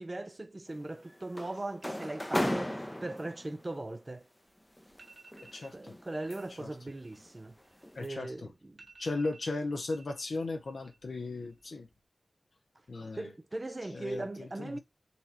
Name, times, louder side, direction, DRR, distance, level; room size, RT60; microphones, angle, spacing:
voice 1, 0.0-4.3 5.7-7.6 8.0-8.8 13.2-14.8, right 2 dB, 35° right, 0.6 m, -39 dB
sound 1, 0.7-3.6 4.8-6.7 7.1-7.4 7.8-8.1, equal, 10° left, 0.7 m, -36 dB
sound 2, 4.5-4.6 4.9-5.8 6.1-6.4 6.7-8.2 8.5-8.6 8.8-10.2 10.5-11.1 11.4-12.0, right 3 dB, 65° right, 1.7 m, -56 dB
voice 2, 5.5-6.0 6.6-6.7 7.9-8.5 9.0-11.9 12.9-13.3 13.9-14.8, left 3 dB, 75° left, 0.7 m, -36 dB
4.1 x 3.0 x 4.1 m
cardioid pair, 45°, 0 cm